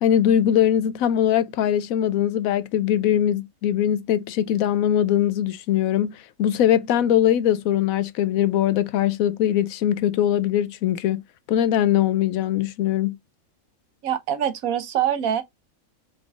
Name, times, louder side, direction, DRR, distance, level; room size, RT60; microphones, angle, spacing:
voice 1, 0.0-11.2 11.5-13.2, left 10 dB, 80° left, 1.0 m, -21 dB
voice 2, 14.0-15.4, right 10 dB, 80° right, 1.2 m, -24 dB
5.4 x 3.5 x 2.3 m
omnidirectional pair, 1.5 m